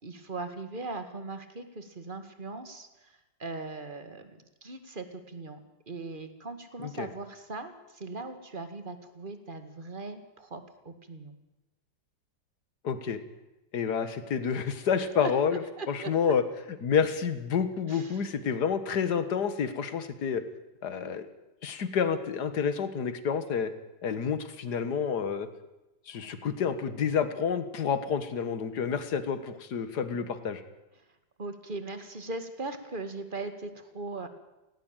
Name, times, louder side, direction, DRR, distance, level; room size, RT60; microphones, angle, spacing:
voice 1, 0.0-5.6 5.9-11.4 15.2-15.3 15.8-16.1 17.9-18.2 31.4-34.3, right 3 dB, 25° right, 9 dB, 2.1 m, -39 dB
voice 2, 12.8-13.2 13.7-15.6 15.9-16.4 16.8-20.4 20.8-21.3 21.6-23.7 24.0-25.5 26.1-30.6, left 7 dB, 60° left, 11 dB, 2.1 m, -29 dB
18.0 x 17.5 x 9.1 m, 1.0 s
omnidirectional pair, 2.1 m